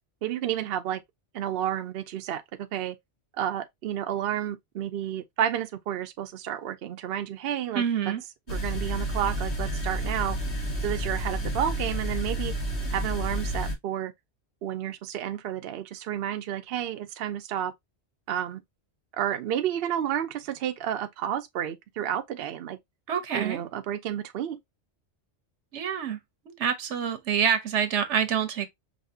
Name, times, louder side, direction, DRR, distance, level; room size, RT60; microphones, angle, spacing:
voice 1, 0.2-1.0 1.3-3.0 3.4-8.1 8.5-10.4 10.8-12.5 12.9-14.1 14.6-17.7 18.3-18.6 19.2-22.8 23.3-24.6, right 10 dB, 65° right, 0.7 m, -31 dB
voice 2, 7.7-8.2 23.1-23.6 25.7-26.2 26.5-28.7, right 8 dB, 90° right, 1.2 m, -27 dB
sound 1, 8.5-13.7, right 1 dB, 70° left, 1.6 m, -30 dB
5.3 x 2.7 x 2.7 m
omnidirectional pair, 1.2 m